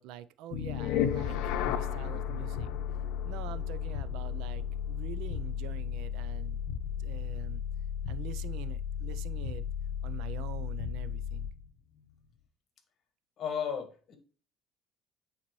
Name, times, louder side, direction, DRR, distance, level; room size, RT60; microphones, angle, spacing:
voice 1, 0.0-2.7 3.2-6.6 7.0-7.6 8.1-9.6 10.0-11.5, right 12 dB, 80° right, 0.5 m, -45 dB
sound 1, 0.5-11.6, left 9 dB, 80° left, 0.7 m, -34 dB
voice 2, 13.4-14.2, left 7 dB, 45° left, 1.6 m, -34 dB
8.8 x 4.0 x 3.1 m
cardioid pair, 115°, 0 cm